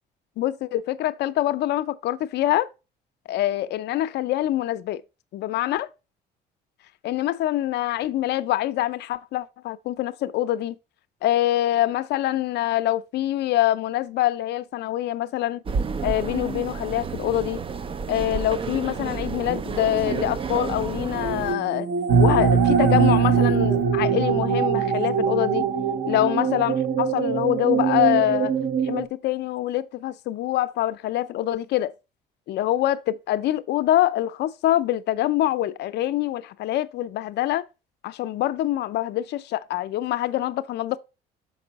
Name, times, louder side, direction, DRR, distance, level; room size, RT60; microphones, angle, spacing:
voice 1, 0.4-2.7 3.3-5.0 5.3-5.9 7.0-10.7 11.2-15.6 16.0-17.6 18.1-21.9 22.2-25.7 26.1-28.5 28.8-31.9 32.5-37.6 38.0-41.0, left 14 dB, 70° left, 0.5 m, -25 dB
sound 1, 15.7-21.6, right 5 dB, 30° right, 0.5 m, -30 dB
sound 2, 20.3-29.1, right 6 dB, 50° right, 0.8 m, -25 dB
sound 3, 22.1-25.6, right 6 dB, 85° right, 0.8 m, -21 dB
6.0 x 5.3 x 4.0 m
supercardioid pair, 80°, 18 cm